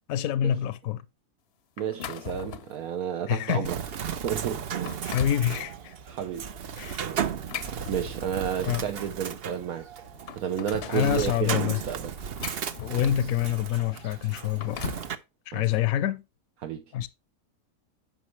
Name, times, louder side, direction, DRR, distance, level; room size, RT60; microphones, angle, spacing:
voice 1, 0.1-1.0 3.3-3.7 5.0-5.9 6.8-7.1 8.6-8.9 10.9-11.8 12.8-14.8 15.5-16.2 16.9-17.1, left 11 dB, 75° left, 1.0 m, -26 dB
sound 1, 1.8-2.8 3.4-3.6 4.2-4.3 4.7-5.5 7.2-8.5 9.6-9.7 10.0-11.1 11.9-13.3 14.3-15.1, left 9 dB, 55° left, 0.8 m, -39 dB
voice 2, 1.8-3.8 4.1-4.7 6.1-6.5 7.9-9.9 10.4-12.1 15.5-15.6 16.6-16.8, right 9 dB, 80° right, 1.3 m, -31 dB
Bird, 3.6-15.1, right 8 dB, 55° right, 0.8 m, -35 dB
10.5 x 6.4 x 3.1 m
omnidirectional pair, 1.5 m